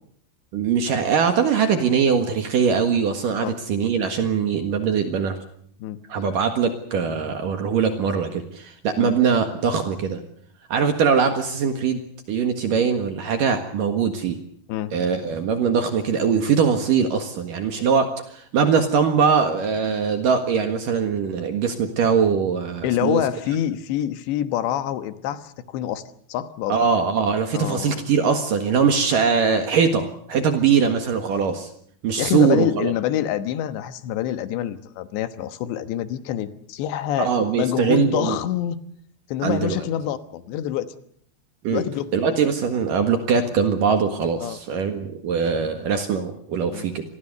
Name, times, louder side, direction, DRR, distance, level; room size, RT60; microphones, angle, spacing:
voice 1, 0.5-5.4 6.1-10.2 10.7-12.0 12.3-14.4 14.9-23.2 26.7-31.7 32.0-32.9 37.2-38.4 39.4-39.8 41.6-41.8 42.1-47.0, right 6 dB, 60° right, 6 dB, 2.9 m, -21 dB
voice 2, 22.8-26.0 26.3-26.8 27.5-28.0 32.2-38.8 39.3-40.9 41.7-42.1 44.4-44.6 46.7-46.9, left 11 dB, 85° left, 11 dB, 3.5 m, -26 dB
27.0 x 20.5 x 6.8 m, 0.64 s
omnidirectional pair, 4.9 m